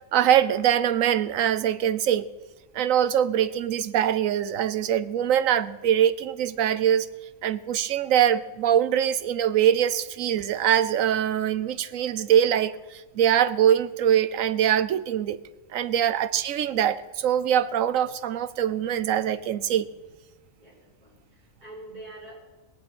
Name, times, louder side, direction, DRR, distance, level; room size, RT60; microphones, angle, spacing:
voice 1, 0.1-2.3 2.7-7.1 7.4-15.4 15.7-19.9, right 10 dB, 85° right, 15 dB, 1.1 m, -23 dB
voice 2, 20.6-22.3, right 2 dB, 35° right, -4 dB, 5.7 m, -45 dB
18.5 x 7.9 x 8.7 m, 1.2 s
omnidirectional pair, 1.3 m